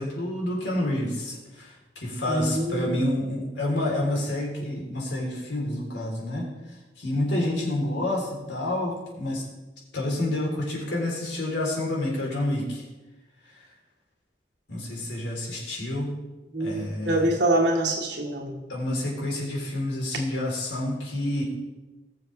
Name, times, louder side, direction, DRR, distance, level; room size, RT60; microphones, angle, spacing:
voice 1, 0.0-6.5 7.0-9.4 9.9-12.8 14.7-16.1 16.6-17.3 18.7-21.4, left 1 dB, 90° left, -2 dB, 3.5 m, -28 dB
voice 2, 2.3-3.0 7.4-7.5 16.5-18.7, right 1 dB, 85° right, 0 dB, 2.1 m, -25 dB
19.5 x 7.0 x 3.3 m, 1.1 s
head